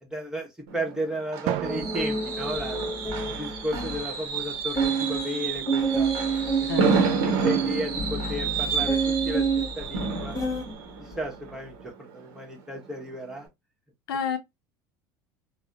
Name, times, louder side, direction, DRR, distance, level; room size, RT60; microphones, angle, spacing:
voice 1, 0.0-2.8 3.2-6.1 6.6-7.0 7.2-10.4 11.0-13.5, equal, 5° right, 1.2 m, -34 dB
Fireworks, 0.7-12.4 12.7-13.0 13.3-13.4, right 5 dB, 75° right, 0.9 m, -30 dB
Drum, 1.5-3.7, right 10 dB, 60° right, 0.4 m, -35 dB
sound 1, 1.7-4.0 4.4-4.5 4.8-10.7 11.1-11.5, right 4 dB, 25° left, 1.0 m, -29 dB
voice 2, 6.7-7.0 14.1-14.4, left 7 dB, 80° left, 0.5 m, -29 dB
3.1 x 2.1 x 2.4 m
hypercardioid pair, 70°, 12 cm